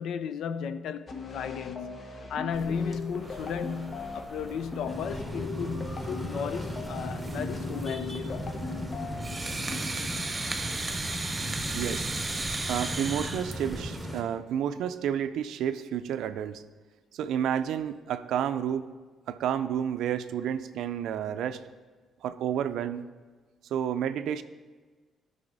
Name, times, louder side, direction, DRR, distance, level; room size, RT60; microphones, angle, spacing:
voice 1, 0.0-8.5, left 6 dB, 75° left, 0.4 m, -35 dB
sound 1, 1.1-9.8, left 4 dB, 45° left, 0.9 m, -40 dB
sound 2, 2.5-14.0, right 3 dB, 25° right, 0.9 m, -37 dB
sound 3, 4.9-14.2, equal, 5° left, 1.3 m, -37 dB
voice 2, 11.7-12.1 12.7-16.6 17.1-18.9 19.3-21.6 22.2-23.0 23.7-24.4, right 9 dB, 80° right, 0.4 m, -30 dB
12.5 x 5.5 x 4.0 m
cardioid pair, 90°, 0 cm